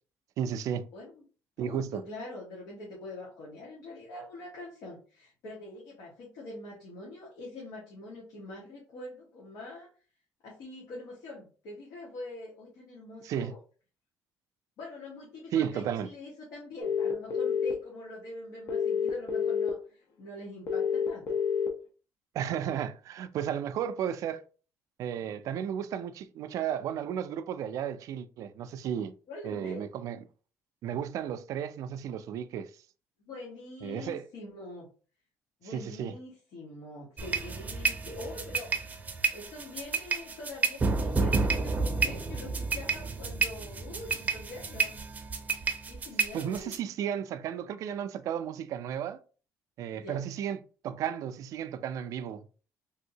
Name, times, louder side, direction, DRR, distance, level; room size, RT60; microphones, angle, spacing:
voice 1, 0.4-0.9 1.6-2.0 13.2-13.5 15.5-16.1 22.3-24.5 25.0-29.1 29.4-30.2 30.8-32.7 33.8-34.3 35.7-36.1 46.3-49.2 49.8-52.5, right 9 dB, 70° right, 0.3 m, -33 dB
voice 2, 0.9-1.2 1.6-9.9 10.4-13.6 14.8-21.4 29.3-29.8 33.2-34.9 35.6-38.7 39.3-44.9 45.8-46.7 50.0-50.2, left 2 dB, 85° left, 1.2 m, -44 dB
sound 1, 16.8-17.7 18.7-19.7 20.7-21.7, left 6 dB, 65° left, 0.8 m, -28 dB
sound 2, 37.2-46.8, right 4 dB, 25° right, 0.6 m, -30 dB
3.5 x 2.7 x 2.7 m
cardioid pair, 120°, 6 cm